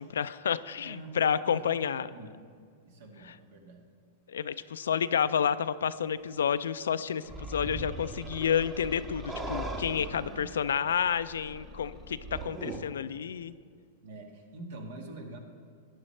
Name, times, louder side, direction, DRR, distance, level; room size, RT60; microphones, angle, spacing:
voice 1, 0.0-2.1 4.3-13.5, left 8 dB, 90° left, 14 dB, 0.3 m, -30 dB
voice 2, 0.8-2.4 2.8-3.8 9.9-11.0 14.0-15.4, right 2 dB, 70° right, 3 dB, 1.7 m, -46 dB
sound 1, 7.3-12.8, right 1 dB, 20° right, 1.1 m, -40 dB
13.5 x 9.9 x 3.2 m, 2.1 s
hypercardioid pair, 125°, 0 cm